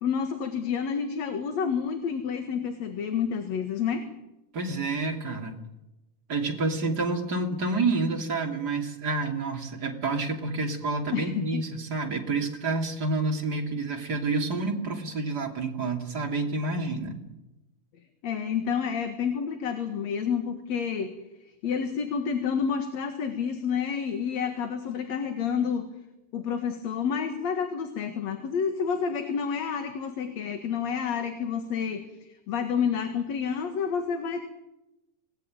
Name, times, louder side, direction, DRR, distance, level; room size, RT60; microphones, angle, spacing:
voice 1, 0.0-4.0 11.1-11.6 18.2-21.1 21.6-25.9 26.3-34.4, left 7 dB, 60° left, 7 dB, 2.8 m, -29 dB
voice 2, 4.5-5.6 6.3-17.2, right 3 dB, 30° right, 2 dB, 3.1 m, -29 dB
25.5 x 19.5 x 8.9 m, 0.97 s
omnidirectional pair, 3.8 m